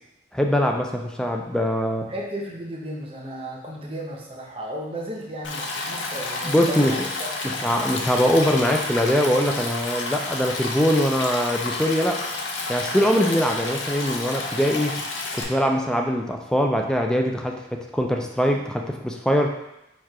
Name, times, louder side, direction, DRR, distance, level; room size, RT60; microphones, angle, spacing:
voice 1, 0.3-2.1 6.4-7.1 7.4-12.2 12.7-15.0 15.3-19.5, equal, 5° left, 2 dB, 0.3 m, -22 dB
voice 2, 2.1-7.7, right 1 dB, 30° right, -1 dB, 0.7 m, -34 dB
Stream, 5.4-15.4, left 3 dB, 90° left, 0.7 m, -30 dB
4.5 x 2.4 x 4.7 m, 0.89 s
head